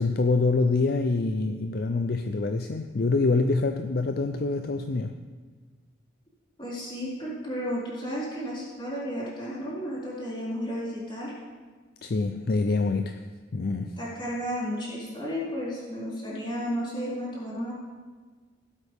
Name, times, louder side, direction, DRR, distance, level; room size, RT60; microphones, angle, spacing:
voice 1, 0.0-5.2 12.0-13.2 13.5-14.0, left 3 dB, 55° left, 7 dB, 0.4 m, -25 dB
voice 2, 6.6-11.3 14.0-17.7, equal, 25° left, -9 dB, 4.1 m, -33 dB
17.0 x 8.3 x 3.6 m, 1.5 s
head